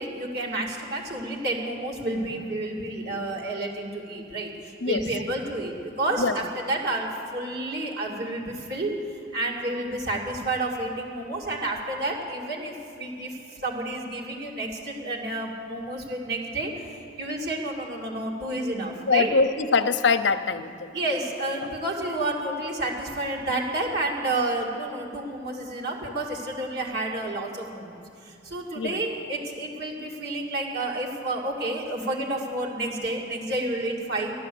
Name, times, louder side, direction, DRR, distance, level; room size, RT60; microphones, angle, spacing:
voice 1, 0.0-4.5 4.8-8.9 9.3-13.4 13.6-16.7 17.2-19.3 20.9-28.0 28.4-34.3, right 2 dB, 60° right, -2 dB, 2.3 m, -30 dB
voice 2, 19.1-20.9 21.5-21.7 28.7-29.0, left 4 dB, 65° left, 11 dB, 0.7 m, -23 dB
14.5 x 11.5 x 7.8 m, 2.7 s
head